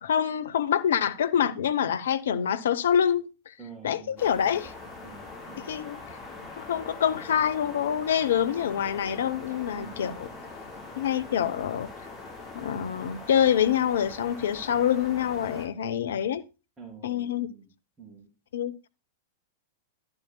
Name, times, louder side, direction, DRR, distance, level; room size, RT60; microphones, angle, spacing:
voice 1, 0.0-3.5 3.8-4.7 5.6-6.0 6.6-10.3 11.0-11.9 12.5-16.4 17.0-17.5 18.5-18.7, left 9 dB, 70° left, 0.8 m, -26 dB
voice 2, 3.6-4.7 5.0-5.8 9.7-10.1 16.8-17.7 18.0-18.3, right 6 dB, 20° right, 3.4 m, -48 dB
sound 1, 4.2-15.7, left 3 dB, 20° left, 6.1 m, -43 dB
11.5 x 11.0 x 2.2 m
figure-of-eight pair, 95°, 0 cm